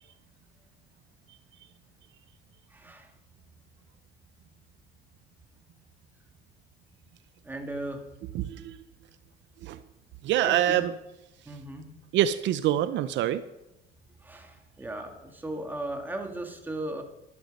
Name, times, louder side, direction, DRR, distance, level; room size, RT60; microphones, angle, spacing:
voice 1, 2.7-3.1 7.4-8.0 10.4-10.9 11.5-11.9 14.2-17.0, right 1 dB, 10° right, 3 dB, 1.9 m, -37 dB
voice 2, 8.3-8.7 9.6-9.8 10.2-10.9 12.1-13.4, right 12 dB, 65° right, 13 dB, 0.6 m, -25 dB
12.0 x 12.0 x 5.3 m, 0.90 s
cardioid pair, 145°, 20 cm